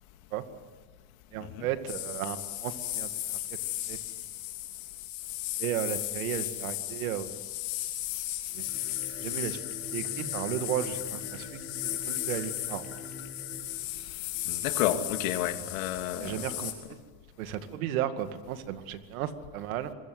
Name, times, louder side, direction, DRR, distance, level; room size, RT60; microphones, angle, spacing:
voice 1, 1.3-3.6 3.9-4.0 5.6-7.3 8.5-8.7 9.2-9.6 9.9-12.8 16.2-16.8 17.4-19.9, right 11 dB, 90° right, 9 dB, 2.2 m, -34 dB
sound 1, 1.9-16.7, left 15 dB, 65° left, 5.0 m, -36 dB
sound 2, 8.5-14.8, left 2 dB, 35° left, 4.2 m, -45 dB
voice 2, 14.5-16.5, left 11 dB, 85° left, 7 dB, 2.5 m, -31 dB
26.0 x 22.5 x 8.0 m, 1.4 s
supercardioid pair, 160°, 41 cm